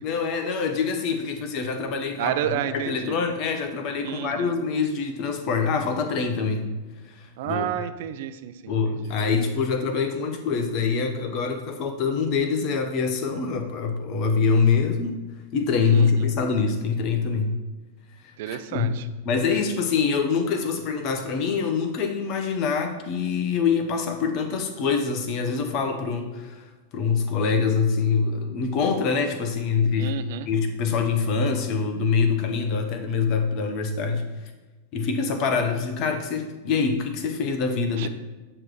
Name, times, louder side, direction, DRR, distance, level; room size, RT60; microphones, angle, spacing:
voice 1, 0.0-6.7 7.1-7.2 7.4-7.7 8.7-15.2 15.5-17.6 18.5-26.6 26.9-30.1 30.5-34.3 34.9-38.1, left 5 dB, 40° left, 7 dB, 1.0 m, -25 dB
voice 2, 2.2-3.2 4.0-4.5 7.4-9.1 15.9-16.1 18.4-19.0 30.0-30.5 38.0-38.1, right 11 dB, 50° right, 9 dB, 0.5 m, -30 dB
8.8 x 3.3 x 6.2 m, 1.2 s
figure-of-eight pair, 90°, 0 cm